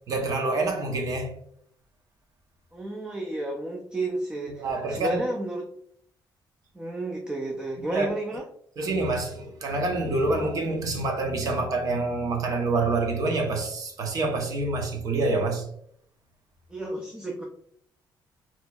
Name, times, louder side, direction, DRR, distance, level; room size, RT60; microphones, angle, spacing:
voice 1, 0.1-1.4 4.6-5.2 7.9-8.1 8.8-15.7, right 2 dB, 45° right, 0.7 m, -27 dB
voice 2, 2.7-5.7 6.7-8.4 16.7-17.4, right 1 dB, 10° right, 0.4 m, -31 dB
4.2 x 2.9 x 2.2 m
cardioid pair, 165°, 8 cm